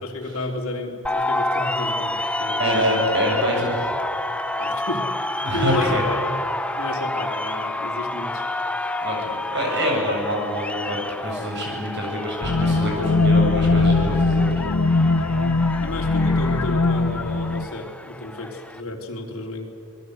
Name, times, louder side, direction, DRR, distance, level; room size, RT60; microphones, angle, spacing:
voice 1, 0.0-3.0 4.6-5.1 5.5-6.3 6.8-8.5 15.8-19.7, left 2 dB, 75° left, 1 dB, 3.5 m, -31 dB
sound 1, 1.0-18.8, left 1 dB, 5° left, 0.6 m, -29 dB
voice 2, 2.6-3.9 5.4-6.0 9.0-15.1, equal, 50° right, 0 dB, 7.5 m, -26 dB
sound 2, 12.4-17.7, left 3 dB, 90° left, 0.9 m, -20 dB
26.5 x 21.0 x 8.1 m, 2.4 s
head